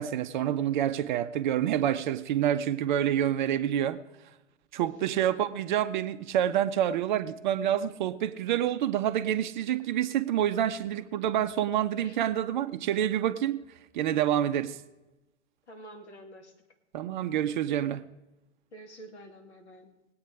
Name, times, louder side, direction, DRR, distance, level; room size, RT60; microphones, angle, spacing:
voice 1, 0.0-4.0 4.7-13.6 13.9-14.8 16.9-18.0, right 10 dB, 40° right, 0.6 m, -27 dB
voice 2, 4.8-5.5 12.0-12.2 15.7-16.5 18.7-19.9, right 2 dB, 65° left, 2.6 m, -48 dB
19.5 x 8.7 x 4.8 m
figure-of-eight pair, 105°, 37 cm